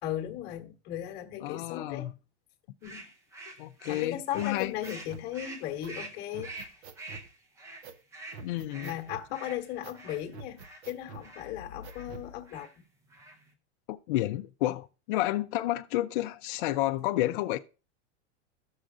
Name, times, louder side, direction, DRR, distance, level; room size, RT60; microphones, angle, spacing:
voice 1, 0.0-2.1 2.8-3.1 3.9-6.5 8.8-10.6 10.8-12.7, left 12 dB, 30° left, 1.1 m, -36 dB
voice 2, 1.4-2.1 3.6-4.7 8.4-9.0 13.9-17.6, left 15 dB, 50° left, 0.5 m, -30 dB
sound 1, 2.8-10.8 11.2-11.5 11.8-12.1 12.5-12.7 13.0-13.5, right 2 dB, 10° right, 0.5 m, -46 dB
sound 2, 4.3-5.3 5.8-5.9 6.3-7.3 7.8-8.0 8.3-9.3 9.8-10.0 10.3-11.3 11.8-12.3, right 5 dB, 70° right, 1.0 m, -46 dB
14.5 x 6.4 x 2.5 m
supercardioid pair, 165°, 34 cm